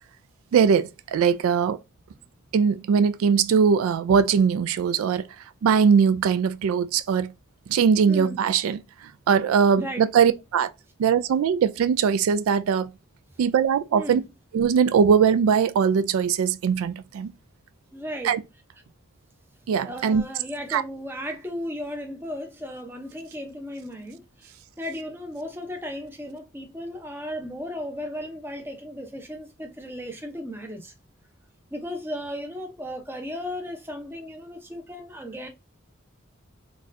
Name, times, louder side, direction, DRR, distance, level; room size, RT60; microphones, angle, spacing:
voice 1, 0.5-1.8 2.5-5.2 5.6-7.3 7.7-8.8 9.3-10.7 11.0-12.9 13.4-14.2 14.5-17.3 18.2-18.4 19.7-20.2 20.7-20.8, right 6 dB, 85° right, 0.3 m, -21 dB
voice 2, 8.1-8.4 9.8-10.1 13.9-14.2 17.9-18.3 19.8-30.9 31.7-35.5, equal, 10° right, 0.5 m, -35 dB
4.0 x 2.3 x 2.5 m
head